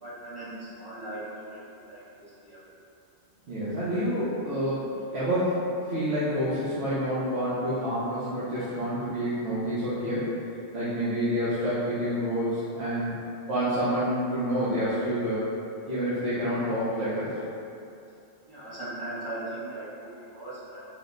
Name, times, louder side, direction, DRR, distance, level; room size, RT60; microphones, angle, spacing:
voice 1, 0.0-2.7 18.5-20.8, right 1 dB, 20° right, -11 dB, 0.8 m, -39 dB
voice 2, 3.5-10.3 10.7-13.1 13.5-15.5 15.9-17.4, equal, 65° right, -12 dB, 1.0 m, -28 dB
3.8 x 2.1 x 3.6 m, 2.6 s
omnidirectional pair, 1.2 m